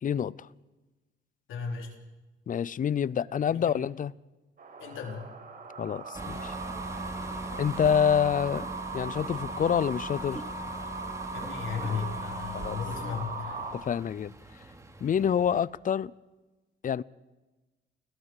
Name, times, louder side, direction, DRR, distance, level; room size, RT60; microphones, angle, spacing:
voice 1, 0.0-0.3 2.5-4.1 5.8-6.5 7.6-8.7 8.9-10.4 12.5-12.8 13.7-14.3 15.0-16.1 16.8-17.0, left 8 dB, 45° left, 0.6 m, -27 dB
voice 2, 1.5-1.9 3.5-3.7 4.8-5.2 11.3-13.6, left 6 dB, 80° left, 4.4 m, -35 dB
sound 1, 4.6-13.7, right 3 dB, 50° right, 6.6 m, -39 dB
sound 2, 6.1-15.6, right 2 dB, 15° right, 2.7 m, -41 dB
29.5 x 20.5 x 4.9 m
cardioid pair, 90°, 20 cm